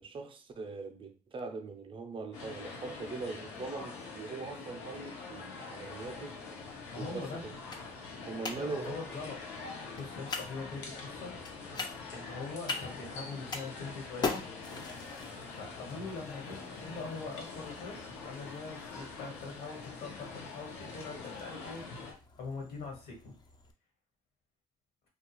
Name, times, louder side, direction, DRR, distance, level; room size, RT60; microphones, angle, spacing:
voice 1, 0.0-6.4 7.0-7.5 8.2-9.0, right 4 dB, 30° right, 0.5 m, -41 dB
sound 1, 2.3-22.1, left 4 dB, 80° left, 0.8 m, -45 dB
sound 2, 5.8-23.7, left 4 dB, 25° left, 0.4 m, -45 dB
voice 2, 6.9-7.4 8.6-9.4 10.0-11.4 12.1-14.5 15.5-21.9 22.3-23.4, left 4 dB, 65° left, 1.2 m, -42 dB
2.3 x 2.3 x 3.0 m
cardioid pair, 110°, 17 cm